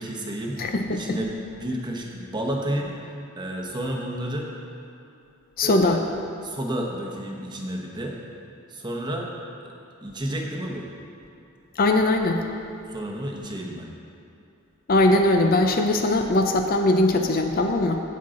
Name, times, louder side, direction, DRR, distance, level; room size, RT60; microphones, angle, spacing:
voice 1, 0.0-0.6 0.9-2.9 3.4-4.5 5.6-6.0 6.4-8.2 8.7-9.3 9.6-9.7 10.0-10.9 12.9-13.9, right 1 dB, 20° right, 0 dB, 0.9 m, -31 dB
voice 2, 0.6-1.2 5.6-6.0 11.8-12.4 14.9-18.0, left 2 dB, 40° left, 4 dB, 0.5 m, -20 dB
16.5 x 5.6 x 3.8 m, 2.8 s
head